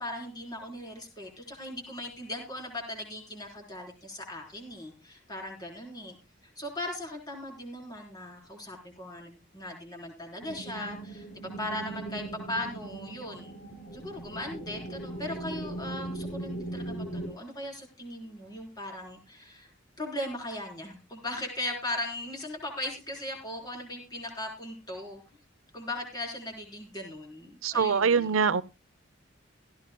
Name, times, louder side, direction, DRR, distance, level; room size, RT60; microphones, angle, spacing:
voice 1, 0.0-6.2 6.6-13.5 13.9-19.7 20.0-25.2 25.7-28.4, left 1 dB, 20° left, 3.9 m, -38 dB
sound 1, 10.4-17.3, right 2 dB, 45° left, 4.2 m, -39 dB
voice 2, 27.6-28.6, right 5 dB, 85° right, 0.6 m, -24 dB
16.5 x 14.5 x 2.2 m
head